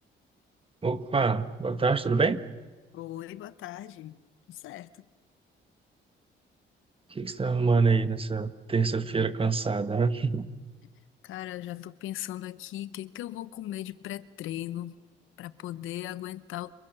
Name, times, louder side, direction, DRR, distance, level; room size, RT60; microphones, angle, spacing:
voice 1, 0.8-2.4 7.1-10.4, right 4 dB, 25° right, 1.7 m, -26 dB
voice 2, 2.9-4.2 4.5-4.9 11.2-15.0 15.4-16.7, left 13 dB, 85° left, 1.0 m, -38 dB
29.5 x 26.5 x 6.9 m
cardioid pair, 90°, 20 cm